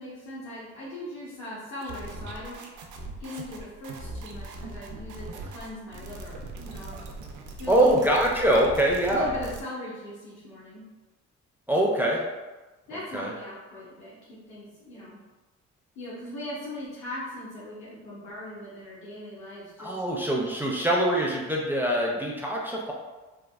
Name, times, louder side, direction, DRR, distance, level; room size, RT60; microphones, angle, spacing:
voice 1, 0.0-2.6 3.2-7.0 7.6-7.9 9.1-10.8 12.9-15.2 16.0-19.9, left 1 dB, 70° left, -9 dB, 1.0 m, -39 dB
sound 1, 1.8-9.6, right 2 dB, 75° right, 0.5 m, -40 dB
voice 2, 7.7-9.3 11.7-12.2 13.1-13.3 19.8-22.9, right 1 dB, 5° right, -2 dB, 0.4 m, -23 dB
3.3 x 2.2 x 2.3 m, 1.2 s
cardioid pair, 90°, 30 cm